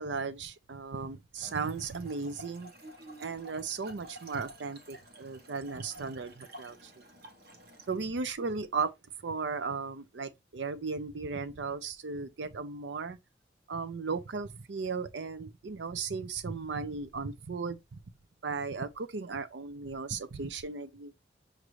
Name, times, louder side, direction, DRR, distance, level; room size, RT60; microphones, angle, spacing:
voice 1, 0.0-2.7 3.2-7.0 7.9-8.9 9.2-13.2 13.7-18.0 18.4-21.1, right 4 dB, 80° right, 0.6 m, -36 dB
Trickle dribble / Fill (with liquid), 1.3-8.0, right 1 dB, 55° right, 1.1 m, -51 dB
6.2 x 2.6 x 3.1 m
head